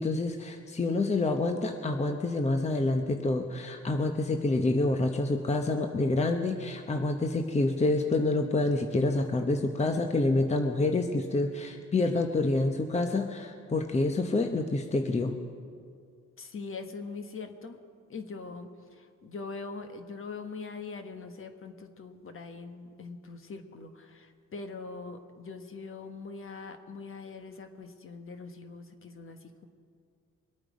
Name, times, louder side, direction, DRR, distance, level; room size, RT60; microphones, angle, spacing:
voice 1, 0.0-15.4, left 2 dB, 20° left, 5 dB, 0.9 m, -27 dB
voice 2, 16.4-17.8 18.1-29.7, left 4 dB, 45° left, 7 dB, 1.3 m, -42 dB
23.5 x 8.8 x 5.2 m, 2.2 s
cardioid pair, 90°, 30 cm